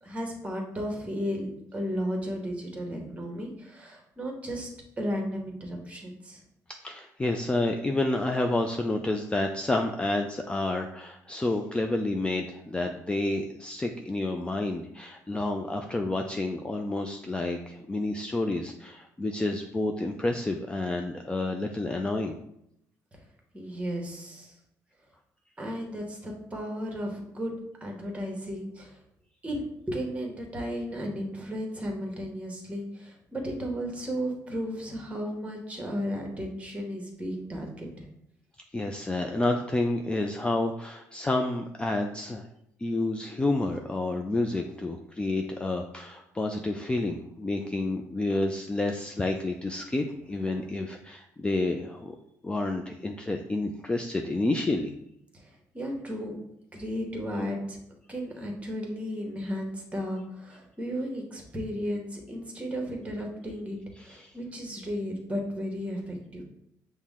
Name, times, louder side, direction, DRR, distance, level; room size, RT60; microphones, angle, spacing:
voice 1, 0.0-4.7 5.0-6.4 23.5-24.5 25.6-27.5 27.8-29.0 29.4-38.1 50.5-50.7 55.3-56.3 56.7-57.8 58.1-66.4, equal, 20° right, 1 dB, 1.1 m, -34 dB
voice 2, 6.8-22.4 38.7-42.5 42.8-52.2 52.4-54.9 64.1-64.3, left 2 dB, 15° left, 3 dB, 0.3 m, -29 dB
5.8 x 2.1 x 3.6 m, 0.78 s
cardioid pair, 100°, 7 cm